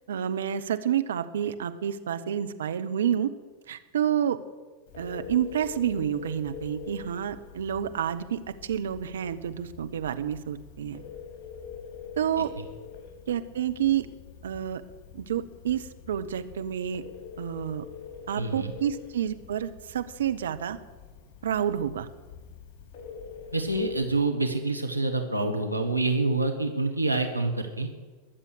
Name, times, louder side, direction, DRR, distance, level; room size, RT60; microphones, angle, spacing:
voice 1, 0.1-3.3 3.7-4.4 5.0-11.0 12.2-12.5 13.3-14.1 14.4-14.8 15.1-17.0 17.4-17.8 18.3-20.8 21.4-22.1, right 9 dB, 65° right, 9 dB, 0.9 m, -29 dB
Telephone, 4.9-24.3, left 6 dB, 40° left, 4.3 m, -45 dB
voice 2, 18.4-18.7 23.5-27.9, right 2 dB, 85° right, 4 dB, 1.3 m, -27 dB
21.0 x 7.4 x 6.7 m, 1.3 s
figure-of-eight pair, 90°, 0 cm